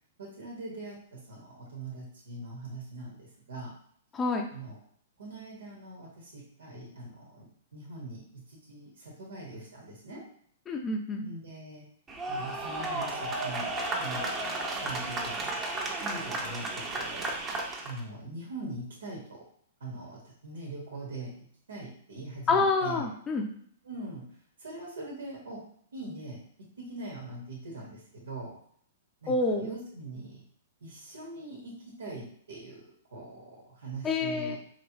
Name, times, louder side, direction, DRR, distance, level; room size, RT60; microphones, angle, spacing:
voice 1, 0.2-3.7 4.5-4.7 5.2-10.2 11.2-11.8 12.3-15.6 16.0-17.3 17.8-19.4 19.8-23.1 23.8-24.2 24.6-25.6 25.9-28.6 29.2-30.4 30.8-34.6, right 2 dB, 90° right, -2 dB, 1.4 m, -42 dB
voice 2, 4.1-4.5 10.7-11.3 22.5-23.5 29.3-29.8 34.0-34.6, left 3 dB, 20° left, 1 dB, 0.5 m, -28 dB
sound 1, 12.1-18.0, right 2 dB, 20° right, 0.8 m, -33 dB
4.8 x 3.1 x 3.0 m, 0.64 s
hypercardioid pair, 135°, 0 cm